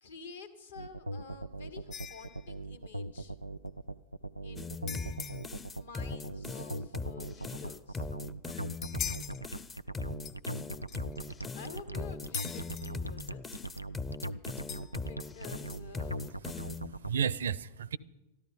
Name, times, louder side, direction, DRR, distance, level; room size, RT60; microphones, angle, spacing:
voice 1, 0.0-3.3 4.4-5.1 5.7-8.1 11.5-13.4 15.0-16.2, left 5 dB, 70° left, 1.5 m, -50 dB
sound 1, 0.7-17.1, right 1 dB, 90° left, 0.4 m, -40 dB
sound 2, 1.9-2.5 4.9-5.6 8.5-9.4 10.2-10.4 10.9-11.2 12.3-12.9 14.7-15.2, left 8 dB, 35° left, 1.0 m, -41 dB
sound 3, 4.6-16.9, left 4 dB, 15° left, 0.5 m, -40 dB
voice 2, 16.3-18.0, right 7 dB, 65° right, 0.4 m, -34 dB
13.5 x 12.5 x 5.5 m
figure-of-eight pair, 90°, 0 cm